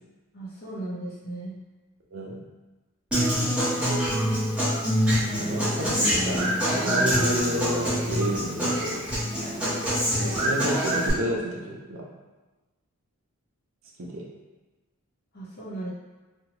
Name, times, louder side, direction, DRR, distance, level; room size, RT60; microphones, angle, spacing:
voice 1, 0.3-1.6 15.3-15.9, right 1 dB, 45° left, -7 dB, 0.7 m, -36 dB
Human voice / Acoustic guitar, 3.1-11.1, equal, 5° right, 0.9 m, -25 dB
voice 2, 5.4-9.0 10.1-12.1 14.0-14.2, right 1 dB, 60° right, -2 dB, 0.5 m, -30 dB
2.6 x 2.3 x 2.9 m, 1.2 s
head